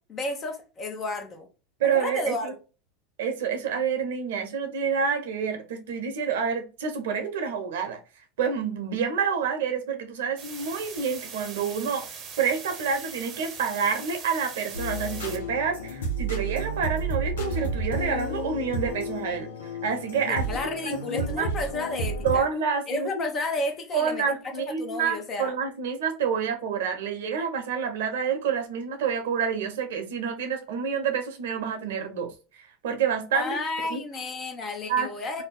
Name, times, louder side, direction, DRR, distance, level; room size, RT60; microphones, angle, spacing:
voice 1, 0.1-1.5 1.9-2.6 20.3-22.5 22.9-24.2 24.6-25.5 33.3-35.4, left 2 dB, 35° left, 0.9 m, -32 dB
voice 2, 1.8-2.5 3.2-8.0 8.4-12.1 12.4-19.5 19.8-20.4 20.8-21.5 22.2-23.3 23.9-32.3 32.6-33.6 33.9-34.0 34.9-35.1, right 6 dB, 75° right, 0.8 m, -28 dB
sound 1, 10.4-15.4, right 6 dB, 40° right, 0.7 m, -41 dB
sound 2, 14.7-22.4, right 1 dB, 80° left, 0.8 m, -31 dB
2.7 x 2.2 x 3.7 m
hypercardioid pair, 90°, 0 cm